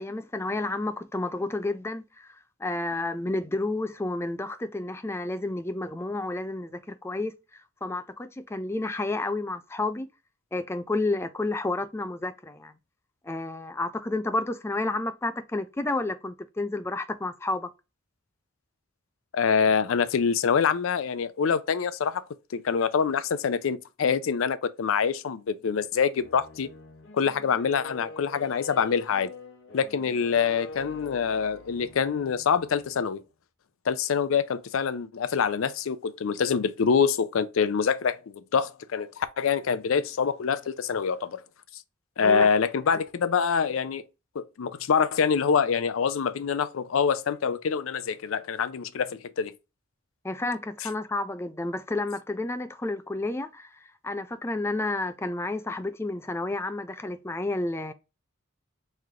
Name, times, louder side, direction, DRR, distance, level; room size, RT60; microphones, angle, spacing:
voice 1, 0.0-2.3 2.6-10.1 10.5-12.7 13.2-17.7 42.2-42.5 42.9-43.0 50.2-53.7 54.0-57.9, left 2 dB, 10° left, 0.3 m, -31 dB
voice 2, 19.3-22.2 22.5-26.7 27.1-29.3 29.7-33.2 33.9-41.4 42.2-44.0 44.4-49.5, left 6 dB, 80° left, 0.4 m, -25 dB
sound 1, 26.1-33.1, left 2 dB, 65° left, 0.9 m, -45 dB
3.6 x 3.2 x 2.8 m
head